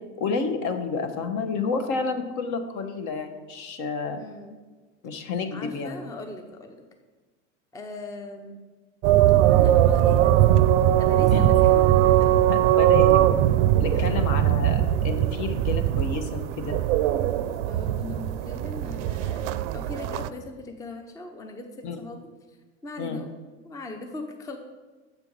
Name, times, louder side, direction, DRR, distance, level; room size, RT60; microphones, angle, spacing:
voice 1, 0.2-4.2 5.0-6.0 11.3-11.5 12.5-13.4 13.8-16.8 21.8-22.0 23.0-23.2, left 4 dB, 55° left, 8 dB, 1.0 m, -30 dB
voice 2, 4.1-4.6 5.5-6.8 7.7-8.6 9.4-10.4 11.0-12.3 13.9-14.2 17.7-22.2 22.5-22.6 22.8-23.3 23.6-24.6, left 2 dB, 10° left, 5 dB, 0.5 m, -39 dB
sound 1, 9.0-20.3, right 12 dB, 80° right, 0.5 m, -20 dB
7.0 x 4.4 x 5.3 m, 1.3 s
supercardioid pair, 120°, 36 cm